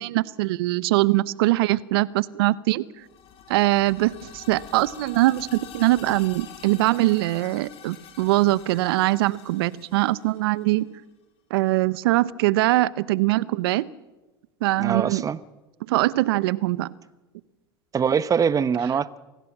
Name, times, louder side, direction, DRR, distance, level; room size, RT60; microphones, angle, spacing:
voice 1, 0.0-2.8 3.5-10.9 11.5-13.9 14.6-15.3 15.9-16.9, right 18 dB, 70° right, 0.8 m, -22 dB
sound 1, 3.0-10.8, left 9 dB, 50° left, 4.0 m, -46 dB
voice 2, 14.8-15.4 17.9-19.2, right 7 dB, 25° right, 1.0 m, -23 dB
25.5 x 16.5 x 7.4 m
hypercardioid pair, 90°, 13 cm